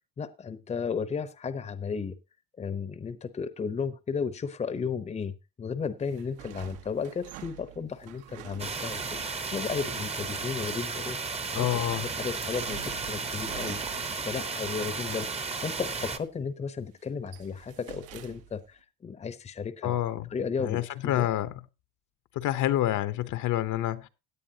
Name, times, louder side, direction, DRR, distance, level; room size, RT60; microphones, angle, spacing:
voice 1, 0.2-2.2 2.6-11.8 12.2-20.0 20.3-21.3, left 6 dB, 20° left, 0.8 m, -34 dB
sound 1, 6.0-9.5 12.3-14.3 15.8-16.4 16.8-18.7, right 11 dB, 75° right, 1.4 m, -47 dB
sound 2, 8.6-16.2, right 4 dB, 15° right, 0.8 m, -34 dB
voice 2, 11.5-12.1 19.8-20.3 20.6-21.5 22.4-24.1, left 13 dB, 55° left, 0.8 m, -28 dB
17.0 x 9.6 x 2.8 m
cardioid pair, 135°, 37 cm